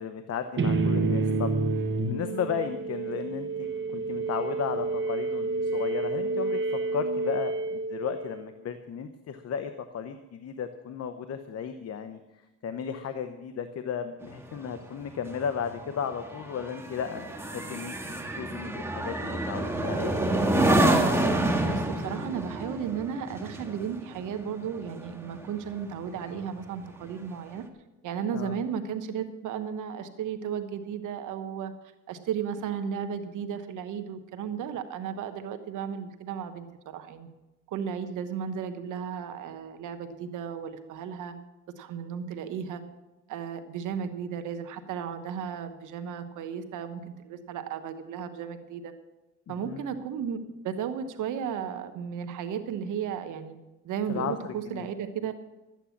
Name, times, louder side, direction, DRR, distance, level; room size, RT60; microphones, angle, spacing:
voice 1, 0.0-1.5 2.1-12.2 12.6-18.0 18.4-20.5 28.3-28.6 49.5-50.0 54.1-54.9, left 7 dB, 55° left, 9 dB, 0.9 m, -35 dB
sound 1, 0.6-8.5, right 3 dB, 40° right, 1.2 m, -29 dB
sound 2, 14.2-25.9 26.3-26.6, right 1 dB, 10° right, 1.8 m, -28 dB
voice 2, 21.6-27.6 28.0-31.7 32.1-37.3 37.7-41.4 41.8-42.8 43.3-48.9 49.5-53.6 53.8-55.4, right 7 dB, 85° right, 8 dB, 1.2 m, -34 dB
12.5 x 9.0 x 7.2 m, 1.0 s
cardioid pair, 90°, 30 cm